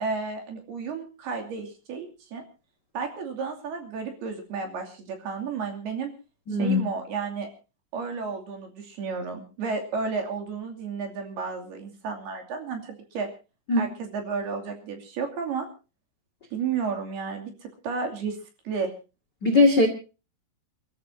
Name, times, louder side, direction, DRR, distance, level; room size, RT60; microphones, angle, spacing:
voice 1, 0.0-2.4 2.9-6.1 6.6-7.5 7.9-13.3 13.8-15.7 16.5-17.5 17.8-18.4 18.6-18.9, right 5 dB, 55° right, 3 dB, 4.4 m, -32 dB
voice 2, 6.5-6.8 13.7-13.9 19.4-19.9, left 3 dB, 55° left, 6 dB, 1.1 m, -19 dB
29.0 x 13.5 x 2.8 m, 0.33 s
omnidirectional pair, 5.7 m